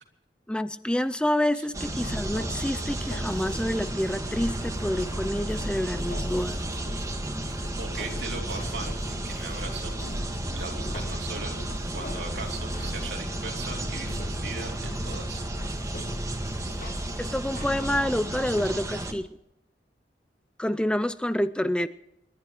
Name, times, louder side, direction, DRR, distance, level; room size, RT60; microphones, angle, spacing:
voice 1, 0.5-6.6 17.2-19.3 20.6-21.9, left 1 dB, 5° left, 12 dB, 0.4 m, -28 dB
sound 1, 1.7-19.1, right 1 dB, 20° right, 1.7 m, -34 dB
sound 2, 2.0-17.9, equal, 55° left, 6.9 m, -36 dB
voice 2, 7.8-9.9 10.5-11.6 11.9-15.4, right 3 dB, 75° right, 1 dB, 3.1 m, -39 dB
29.5 x 11.5 x 3.1 m, 0.85 s
head